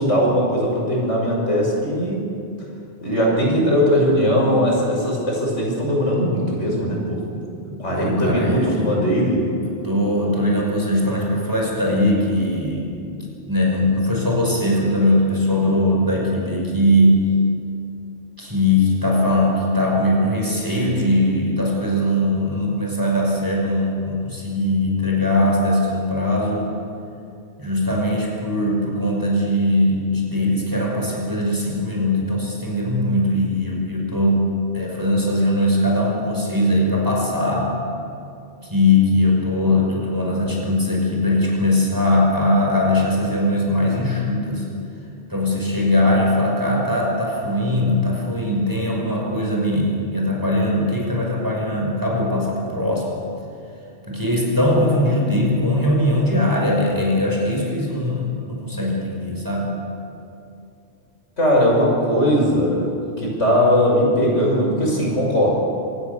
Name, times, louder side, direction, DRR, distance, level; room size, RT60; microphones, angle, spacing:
voice 1, 0.0-2.2 3.0-7.4 7.8-9.5 61.4-62.9 63.2-65.5, equal, 80° left, -2 dB, 6.4 m, -19 dB
voice 2, 7.7-8.9 9.6-12.9 13.5-17.3 18.4-26.7 27.6-34.5 34.7-37.7 38.6-44.7 45.3-53.2 54.1-59.7, left 1 dB, 15° right, -2 dB, 5.6 m, -20 dB
26.5 x 18.5 x 7.0 m, 2.6 s
omnidirectional pair, 1.2 m